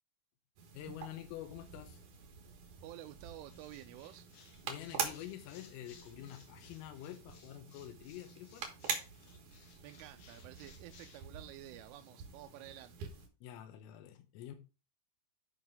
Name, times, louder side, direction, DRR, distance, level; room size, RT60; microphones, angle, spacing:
sound 1, 0.6-13.3, right 6 dB, 70° right, 1.9 m, -46 dB
voice 1, 0.7-2.0 4.6-8.7 13.4-14.6, left 12 dB, 85° left, 3.4 m, -47 dB
voice 2, 2.8-4.3 9.8-13.1, right 13 dB, 90° right, 3.1 m, -51 dB
sound 2, 3.1-11.3, left 6 dB, 65° left, 2.8 m, -62 dB
9.2 x 5.5 x 3.5 m
omnidirectional pair, 5.7 m